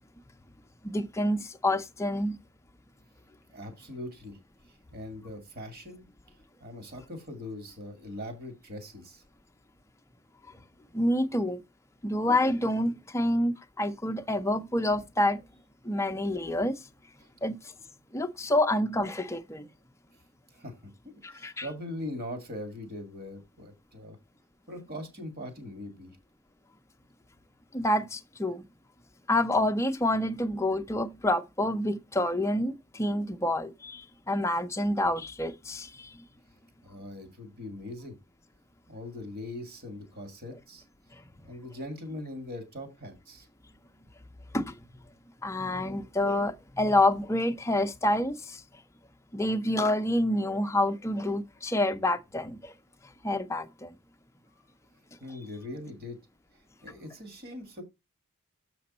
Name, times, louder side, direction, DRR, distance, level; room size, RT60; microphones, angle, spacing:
voice 1, 0.8-2.4 10.9-11.6 12.0-15.4 15.8-16.8 17.4-17.6 18.1-19.7 21.2-21.7 27.7-28.6 29.3-36.2 44.5-44.7 45.4-48.6 49.3-52.7 53.2-53.9, left 1 dB, 15° left, 0.6 m, -28 dB
voice 2, 3.5-4.4 4.7-9.2 17.2-17.3 20.5-24.2 24.7-26.2 36.8-38.2 38.9-40.8 41.4-43.5 55.2-56.2 56.8-57.8, left 1 dB, 45° right, 2.2 m, -41 dB
7.0 x 6.0 x 4.2 m
head